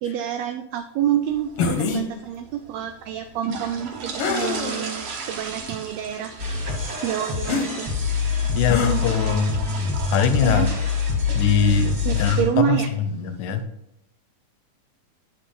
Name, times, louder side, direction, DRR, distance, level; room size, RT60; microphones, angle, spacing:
voice 1, 0.0-6.4 7.0-7.9 10.4-10.7 12.0-12.9, right 10 dB, 80° right, 8 dB, 1.6 m, -27 dB
sound 1, 1.2-13.6, right 4 dB, 65° right, 2.1 m, -38 dB
sound 2, 1.6-2.0 4.2-4.8 5.5-5.6 7.4-7.7 8.7-9.0, left 4 dB, 65° left, 1.6 m, -24 dB
sound 3, 6.4-12.4, left 5 dB, 40° right, 2.4 m, -25 dB
voice 2, 8.6-9.5 10.1-10.7 11.4-12.8 13.1-13.6, left 7 dB, 80° left, 10 dB, 2.1 m, -22 dB
10.0 x 5.0 x 3.8 m, 0.83 s
omnidirectional pair, 3.4 m